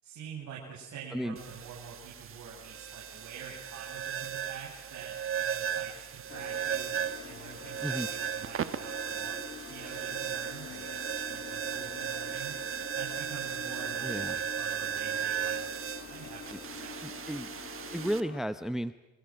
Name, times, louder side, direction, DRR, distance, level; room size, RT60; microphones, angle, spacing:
voice 1, 0.0-6.9 7.2-12.6 13.0-17.0, right 7 dB, 60° right, -3 dB, 7.7 m, -46 dB
sound 1, 1.4-18.2, right 8 dB, 40° right, 1.5 m, -36 dB
sound 2, 6.3-18.4, left 6 dB, 35° left, 2.4 m, -46 dB
voice 2, 14.0-14.4 16.5-16.6 17.0-17.5 17.9-18.9, equal, ahead, 12 dB, 0.8 m, -33 dB
28.5 x 25.5 x 6.3 m, 1.1 s
supercardioid pair, 95°, 32 cm